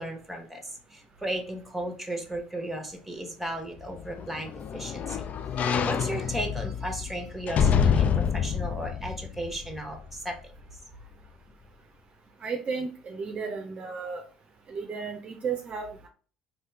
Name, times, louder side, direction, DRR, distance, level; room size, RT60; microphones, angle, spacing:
voice 1, 0.0-5.3 5.5-10.4, right 1 dB, 5° right, 5 dB, 1.1 m, -35 dB
sound 1, 3.8-10.2 10.6-10.7, left 7 dB, 40° left, 0.4 m, -27 dB
voice 2, 12.4-14.2 14.7-16.1, right 5 dB, 35° right, 3 dB, 0.6 m, -34 dB
4.3 x 2.8 x 3.4 m, 0.39 s
figure-of-eight pair, 55°, 4 cm